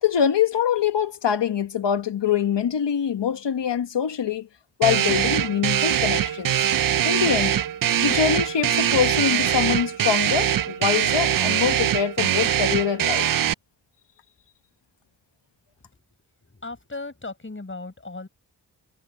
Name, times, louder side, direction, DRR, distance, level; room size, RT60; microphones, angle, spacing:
voice 1, 0.0-4.5 4.8-6.7 7.0-7.6 8.0-13.3, left 8 dB, 85° left, 1.3 m, -24 dB
sound 1, 4.8-13.5, right 10 dB, 55° right, 0.5 m, -22 dB
voice 2, 16.4-18.3, left 3 dB, 30° left, 5.8 m, -37 dB
wide cardioid pair, 85°, 41 cm